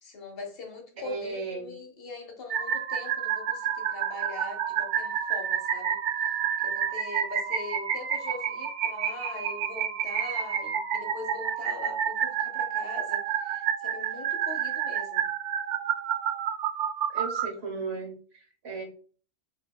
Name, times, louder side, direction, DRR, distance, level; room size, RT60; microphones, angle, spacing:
voice 1, 0.0-6.0 6.6-15.3, left 3 dB, 55° left, 2 dB, 1.1 m, -42 dB
voice 2, 0.9-1.7 17.1-18.8, right 4 dB, 65° right, 2 dB, 1.3 m, -36 dB
sound 1, 2.5-17.5, right 8 dB, 85° right, 0.9 m, -29 dB
6.5 x 2.9 x 2.3 m, 0.42 s
omnidirectional pair, 1.2 m